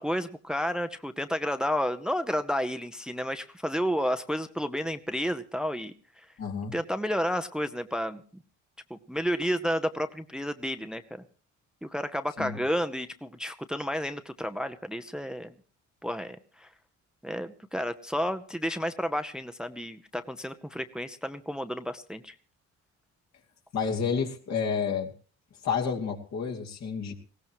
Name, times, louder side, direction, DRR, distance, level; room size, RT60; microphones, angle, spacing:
voice 1, 0.0-6.3 6.7-8.2 8.9-11.2 11.8-15.5 16.0-16.7 17.2-22.4, equal, ahead, 9 dB, 0.8 m, -31 dB
voice 2, 6.4-6.7 12.4-12.6 23.7-25.1 25.6-27.1, left 6 dB, 60° left, 1 dB, 2.6 m, -30 dB
19.5 x 17.0 x 3.1 m, 0.39 s
cardioid pair, 90°, 30 cm